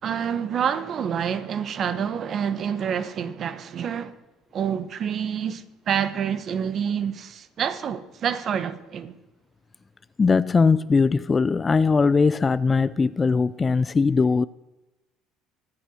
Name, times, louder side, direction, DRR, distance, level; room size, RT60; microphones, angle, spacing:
voice 1, 0.0-4.1 4.5-9.1, right 8 dB, 45° right, 1.3 m, -27 dB
voice 2, 10.2-14.4, left 4 dB, 25° left, 0.5 m, -20 dB
24.5 x 8.5 x 6.4 m
supercardioid pair, 95°, 0 cm